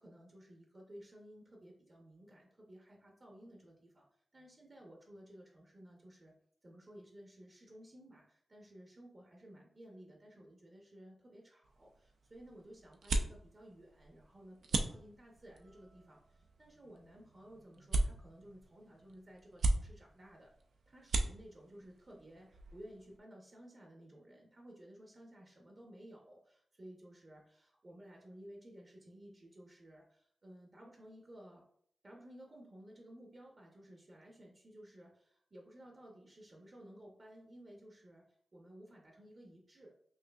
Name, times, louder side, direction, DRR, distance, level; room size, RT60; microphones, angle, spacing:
voice 1, 0.0-4.1 4.3-6.3 6.6-20.5 20.9-31.6 32.0-39.9, right 1 dB, 35° right, -1 dB, 0.7 m, -56 dB
sound 1, 11.6-23.2, right 2 dB, 80° right, 0.4 m, -39 dB
5.6 x 2.6 x 2.3 m, 0.66 s
wide cardioid pair, 100°, 0 cm